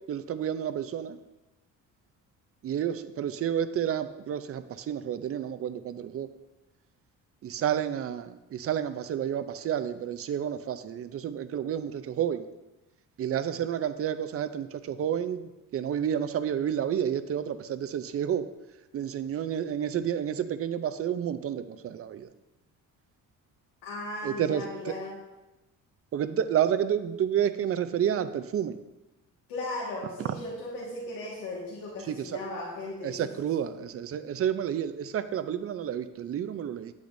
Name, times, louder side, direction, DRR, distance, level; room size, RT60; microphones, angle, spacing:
voice 1, 0.1-1.2 2.6-6.3 7.4-12.4 13.2-15.4 15.7-18.5 18.9-22.3 24.2-24.6 26.1-28.8 33.0-36.9, right 9 dB, 45° right, 11 dB, 0.5 m, -30 dB
voice 2, 23.8-25.2 29.5-33.6, left 2 dB, 90° left, -5 dB, 1.9 m, -37 dB
10.5 x 8.3 x 2.7 m, 1.0 s
cardioid pair, 120°, 33 cm